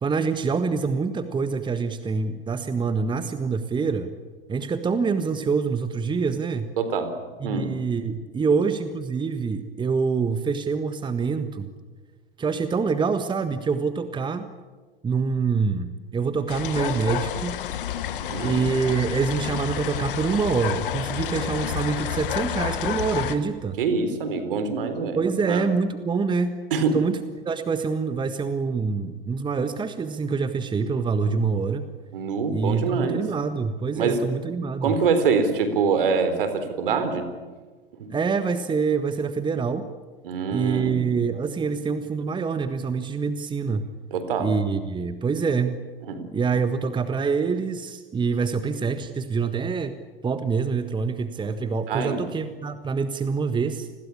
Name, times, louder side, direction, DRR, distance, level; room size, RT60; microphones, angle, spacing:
voice 1, 0.0-4.1 4.5-6.7 7.4-11.7 12.4-14.5 15.0-17.6 18.4-23.8 25.1-26.5 26.9-27.2 27.4-31.8 32.5-34.9 38.1-39.8 40.5-43.9 44.4-45.8 46.3-49.9 50.2-53.9, right 5 dB, 15° right, 11 dB, 1.5 m, -25 dB
voice 2, 6.8-7.2 7.4-7.7 18.3-18.7 23.8-25.2 25.5-25.6 26.7-27.0 32.1-33.2 34.0-34.2 34.8-37.3 38.0-38.1 40.2-41.2 44.1-44.5 46.1-46.2 51.9-52.2, right 5 dB, 65° right, 10 dB, 4.1 m, -25 dB
sound 1, 16.5-23.4, left 10 dB, 60° left, 2.1 m, -29 dB
30.0 x 21.0 x 8.6 m, 1.3 s
figure-of-eight pair, 85°, 30 cm